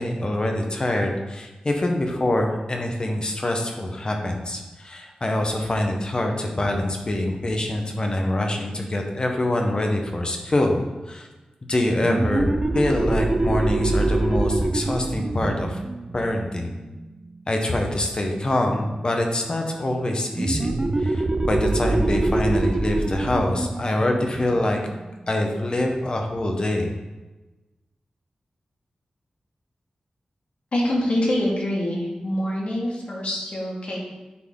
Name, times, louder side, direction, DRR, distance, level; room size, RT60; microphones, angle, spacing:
voice 1, 0.0-11.3 11.7-15.8 16.1-16.7 17.5-24.8 25.3-26.9, left 1 dB, 35° left, 3 dB, 1.0 m, -25 dB
sound 1, 12.0-17.3 20.4-25.6, right 2 dB, 30° right, 0.4 m, -25 dB
voice 2, 30.7-34.0, left 1 dB, 60° left, -4 dB, 2.0 m, -25 dB
9.6 x 4.2 x 3.8 m, 1.1 s
wide cardioid pair, 115°, 2 cm